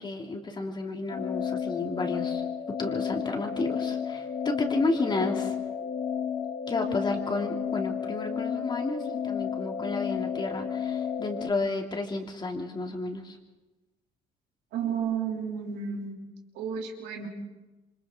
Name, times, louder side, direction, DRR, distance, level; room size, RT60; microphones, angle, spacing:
voice 1, 0.0-2.4 2.8-5.6 6.7-13.4, left 2 dB, 25° left, 1 dB, 3.0 m, -31 dB
sound 1, 1.1-11.5, left 7 dB, 65° left, 1.8 m, -32 dB
voice 2, 14.7-16.1 16.5-17.3, right 7 dB, 90° right, 0 dB, 3.5 m, -32 dB
27.5 x 25.0 x 3.9 m, 1.1 s
cardioid pair, 110°, 17 cm